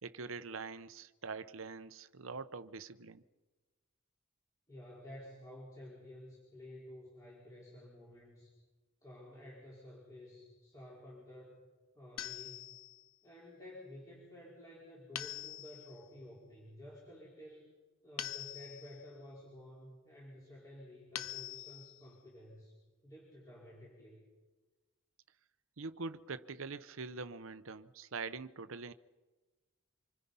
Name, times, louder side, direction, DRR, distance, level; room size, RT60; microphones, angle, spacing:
voice 1, 0.0-3.2 25.8-28.9, right 4 dB, 75° right, 0.8 m, -44 dB
voice 2, 4.7-8.5 9.0-11.6 11.9-12.7 13.2-17.7 18.0-22.7 23.0-24.2, left 1 dB, 15° left, 4.8 m, -52 dB
sound 1, 12.2-13.1 15.2-16.0 18.2-19.1 21.1-22.1, left 11 dB, 90° left, 1.0 m, -44 dB
27.0 x 24.0 x 5.6 m
head